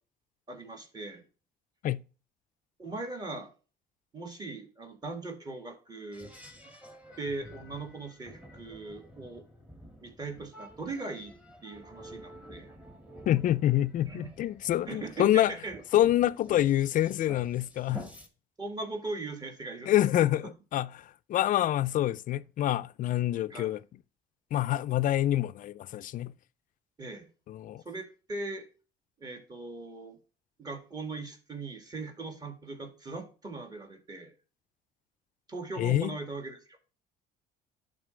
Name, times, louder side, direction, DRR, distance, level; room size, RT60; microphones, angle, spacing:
voice 1, 0.5-1.3 2.8-3.5 4.1-6.3 7.2-9.4 10.0-11.3 11.6-12.7 14.0-14.3 14.9-15.8 18.6-20.0 23.5-23.7 27.0-27.3 27.8-28.6 29.2-30.2 30.6-34.3 35.5-36.8, right 3 dB, 25° right, 2.0 m, -39 dB
sound 1, 6.1-18.3, equal, 5° right, 1.7 m, -50 dB
voice 2, 13.3-15.5 15.9-18.1 19.9-23.8 24.5-26.3 27.5-27.8 35.8-36.2, left 13 dB, 50° left, 0.4 m, -27 dB
11.0 x 4.0 x 3.2 m
cardioid pair, 110°, 17 cm